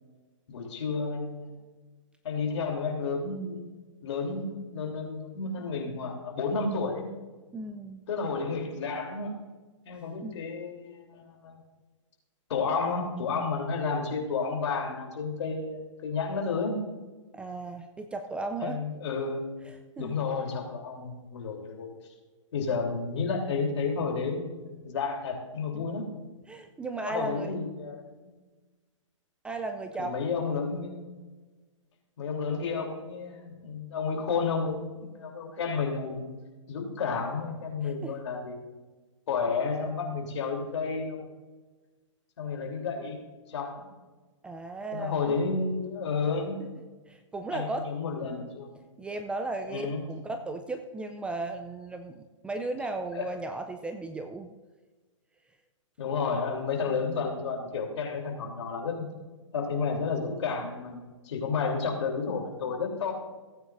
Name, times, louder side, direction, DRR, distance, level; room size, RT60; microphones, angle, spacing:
voice 1, 0.5-1.5 2.2-3.7 4.0-7.1 8.1-9.4 9.8-11.6 12.5-16.8 18.6-19.5 20.0-21.9 22.5-26.1 27.0-28.3 30.0-31.0 32.2-36.3 36.7-38.6 39.3-41.3 42.4-43.2 43.5-43.9 44.9-46.6 47.5-48.7 49.6-50.1 53.1-53.3 56.0-59.1 59.5-63.1, left 4 dB, 60° left, 1 dB, 3.2 m, -31 dB
voice 2, 7.5-8.0 10.2-10.4 17.3-18.8 19.7-20.2 25.7-25.9 26.5-27.5 29.4-30.2 37.8-38.2 44.4-45.3 47.1-47.9 49.0-54.5, right 2 dB, 5° right, 6 dB, 0.4 m, -36 dB
17.5 x 9.2 x 2.6 m, 1.3 s
hypercardioid pair, 135°, 17 cm